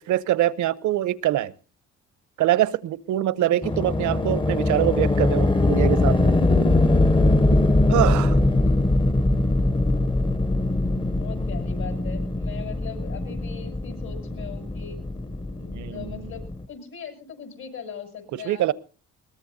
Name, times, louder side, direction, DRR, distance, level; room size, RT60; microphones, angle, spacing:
voice 1, 0.1-1.5 2.4-6.3 7.9-8.4 15.7-16.3 18.5-18.7, right 13 dB, 75° right, 18 dB, 0.8 m, -24 dB
sound 1, 3.6-16.6, left 2 dB, 15° left, 0.7 m, -22 dB
voice 2, 7.8-8.1 11.1-15.0 15.6-18.6, left 7 dB, 70° left, 3 dB, 6.3 m, -40 dB
21.5 x 19.5 x 2.7 m, 0.35 s
cardioid pair, 90°, 30 cm